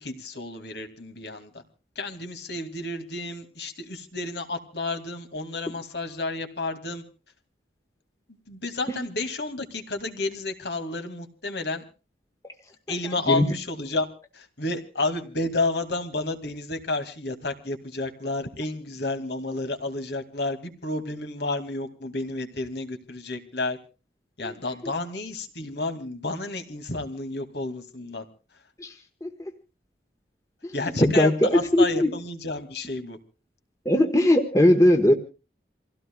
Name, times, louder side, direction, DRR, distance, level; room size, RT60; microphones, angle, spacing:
voice 1, 0.0-1.6 2.0-7.0 8.5-11.8 12.9-14.1 14.3-23.8 24.4-28.2 30.7-33.2, left 2 dB, 70° left, 7 dB, 2.5 m, -31 dB
voice 2, 31.0-32.1 33.8-35.1, left 1 dB, 20° left, 5 dB, 1.4 m, -19 dB
27.5 x 16.5 x 2.4 m, 0.34 s
head